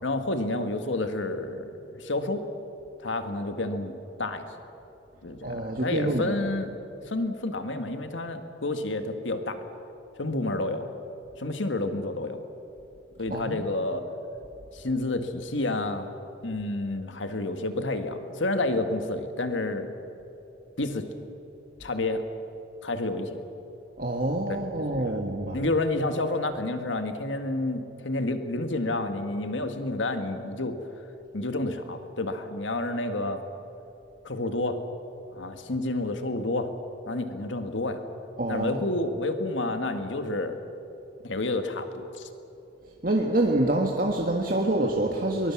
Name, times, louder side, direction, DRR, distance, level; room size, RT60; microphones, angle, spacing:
voice 1, 0.0-2.5 3.0-4.5 5.2-6.7 7.1-9.6 10.2-10.9 11.4-12.4 13.2-14.0 14.7-16.1 16.4-19.9 20.8-21.1 21.8-22.2 22.8-23.4 24.5-24.6 24.8-25.1 25.5-30.7 31.3-33.4 34.2-34.8 35.3-36.7 37.1-38.0 38.5-40.6 41.2-42.3, left 2 dB, 90° left, 7 dB, 1.8 m, -29 dB
voice 2, 5.4-6.4 13.3-13.6 24.0-25.6 38.4-38.8 43.0-45.5, right 1 dB, 50° right, 0 dB, 1.7 m, -26 dB
23.0 x 21.0 x 7.3 m, 3.0 s
head